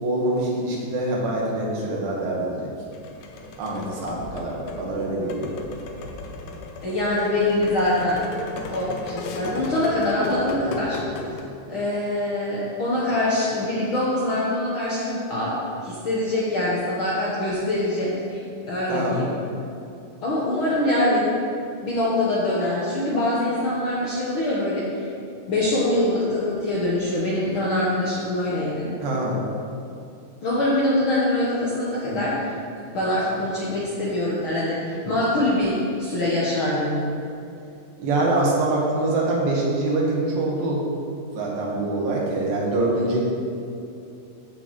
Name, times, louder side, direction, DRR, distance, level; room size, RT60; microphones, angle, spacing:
voice 1, 0.0-2.7 3.6-5.5 18.9-19.2 29.0-29.4 38.0-40.8 41.3-43.2, right 2 dB, 90° right, -3 dB, 3.3 m, -24 dB
sound 1, 2.9-11.4, left 3 dB, 75° left, 1.9 m, -36 dB
voice 2, 6.8-8.2 8.7-11.0 11.7-15.5 15.8-18.4 18.7-19.3 20.2-21.3 21.8-24.8 25.5-28.9 30.4-32.3 32.9-37.0, left 1 dB, 60° left, -7 dB, 1.4 m, -24 dB
14.0 x 6.2 x 3.1 m, 2.6 s
omnidirectional pair, 3.9 m